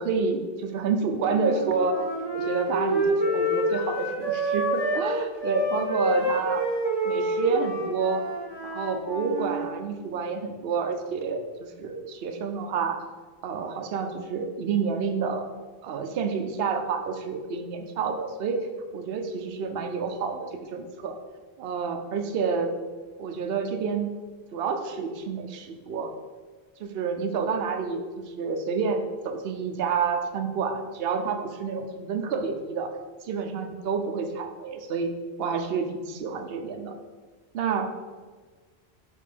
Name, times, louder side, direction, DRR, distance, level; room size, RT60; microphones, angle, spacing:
voice 1, 0.0-2.0 2.3-6.6 7.0-8.2 8.6-13.0 13.4-15.4 15.8-18.6 18.9-21.2 21.6-22.7 23.2-24.1 24.5-26.1 26.8-32.9 33.2-35.1 35.4-36.9 37.5-37.9, right 5 dB, 65° right, 5 dB, 0.9 m, -29 dB
Wind instrument woodwind instrument, 1.2-5.1 5.4-9.7, right 1 dB, 25° left, 1.6 m, -28 dB
5.4 x 4.9 x 5.0 m, 1.4 s
omnidirectional pair, 1.1 m